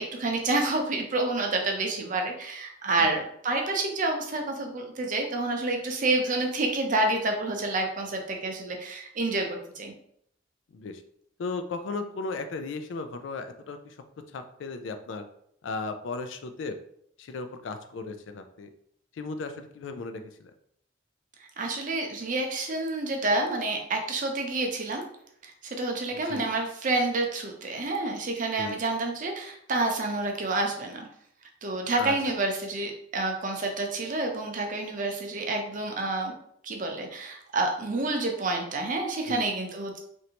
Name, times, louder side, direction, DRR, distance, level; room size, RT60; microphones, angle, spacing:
voice 1, 0.0-9.9 21.6-25.1 25.4-31.1 31.6-36.3 36.6-40.0, right 2 dB, 40° right, 2 dB, 0.6 m, -28 dB
voice 2, 11.4-13.9 14.3-15.2 15.6-16.8 17.2-18.7 19.2-20.5 26.1-26.5 28.6-28.8 32.0-32.1 39.3-39.4, left 3 dB, 70° left, 8 dB, 0.4 m, -36 dB
3.2 x 2.6 x 2.8 m, 0.68 s
head